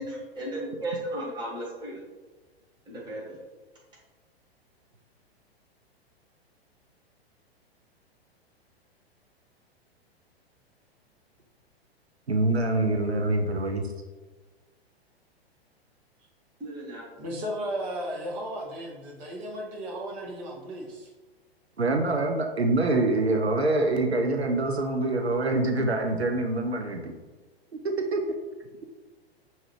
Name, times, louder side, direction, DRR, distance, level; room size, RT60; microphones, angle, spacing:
voice 1, 0.0-1.9 2.8-3.4 16.6-17.0, right 1 dB, 15° right, -5 dB, 1.3 m, -35 dB
voice 2, 12.3-13.9 21.8-27.1 27.8-28.2, right 2 dB, 85° right, 4 dB, 0.5 m, -25 dB
voice 3, 17.2-21.1, equal, 35° right, -1 dB, 1.1 m, -35 dB
5.6 x 2.8 x 3.2 m, 1.3 s
figure-of-eight pair, 105°, 31 cm